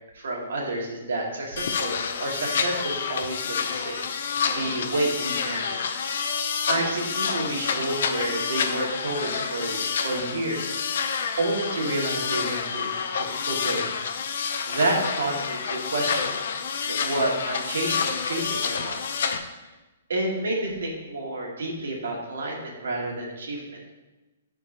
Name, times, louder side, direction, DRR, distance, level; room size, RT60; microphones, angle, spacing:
voice 1, 0.1-1.9 2.2-4.0 4.5-5.8 6.7-10.8 11.4-12.9 13.2-13.8 14.7-16.4 16.8-19.0 20.1-23.8, right 2 dB, 85° right, -2 dB, 2.1 m, -29 dB
sound 1, 1.6-19.4, left 6 dB, 50° left, 0.6 m, -28 dB
13.0 x 4.5 x 2.9 m, 1.1 s
hypercardioid pair, 180°, 0 cm